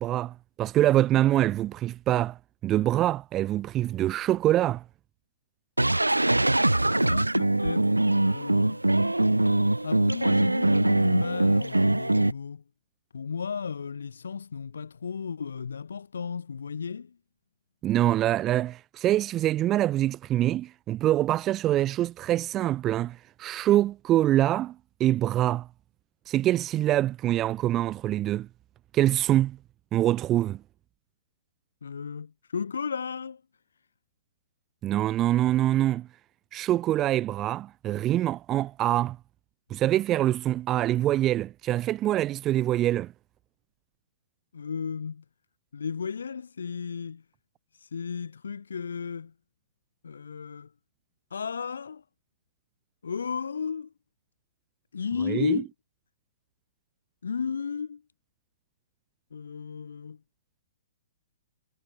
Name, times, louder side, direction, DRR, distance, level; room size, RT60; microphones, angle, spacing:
voice 1, 0.0-2.4 2.6-4.8 17.8-25.7 26.3-28.5 28.9-29.6 29.9-30.6 34.8-36.1 36.5-39.2 39.7-43.1 55.2-55.6, right 13 dB, 25° right, 2.2 m, -25 dB
sound 1, 5.8-12.3, right 2 dB, 90° right, 0.5 m, -23 dB
voice 2, 6.9-7.9 8.2-8.8 9.8-12.6 13.1-17.2 31.8-33.4 44.5-45.2 45.7-47.2 47.8-49.3 50.0-50.7 51.3-52.0 53.0-53.9 54.9-55.7 57.2-58.0 59.3-60.2, left 6 dB, 65° left, 6.8 m, -34 dB
figure-of-eight pair, 120°, 0 cm